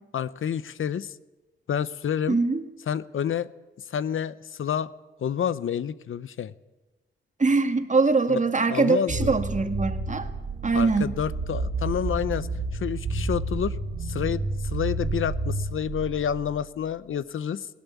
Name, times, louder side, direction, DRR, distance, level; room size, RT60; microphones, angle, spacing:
voice 1, 0.1-1.1 1.7-2.4 2.9-3.5 3.9-4.9 5.2-6.5 8.3-8.4 8.7-9.4 10.7-17.7, left 8 dB, 75° left, 16 dB, 0.8 m, -29 dB
voice 2, 2.3-2.6 7.4-10.3 10.6-11.1, right 4 dB, 35° right, 8 dB, 1.9 m, -23 dB
sound 1, 9.1-16.6, right 2 dB, 70° right, 3.1 m, -30 dB
19.0 x 17.5 x 8.2 m, 1.1 s
cardioid pair, 75°, 21 cm